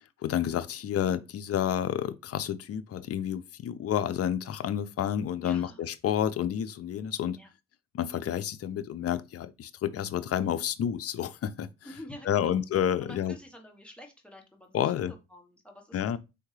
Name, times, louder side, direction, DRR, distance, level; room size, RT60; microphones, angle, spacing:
voice 1, 0.2-7.4 7.9-11.7 12.3-13.3 14.7-15.1 15.9-16.2, left 10 dB, 50° left, 0.6 m, -30 dB
voice 2, 5.4-6.1 7.4-7.5 11.8-12.6 13.0-16.2, equal, 5° left, 1.3 m, -49 dB
4.4 x 3.5 x 3.2 m
cardioid pair, 90°, 30 cm